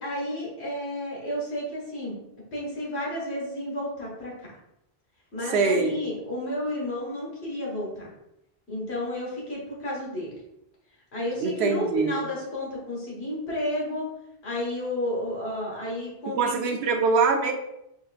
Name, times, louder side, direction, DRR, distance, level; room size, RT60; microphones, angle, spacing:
voice 1, 0.0-2.1 2.5-4.5 5.3-8.1 8.7-10.3 11.1-14.1 14.4-16.6, left 1 dB, 90° left, -4 dB, 1.6 m, -31 dB
voice 2, 5.5-6.0 11.4-12.2 16.3-17.5, right 4 dB, 80° right, 3 dB, 0.9 m, -23 dB
4.5 x 2.7 x 2.4 m, 0.85 s
omnidirectional pair, 1.1 m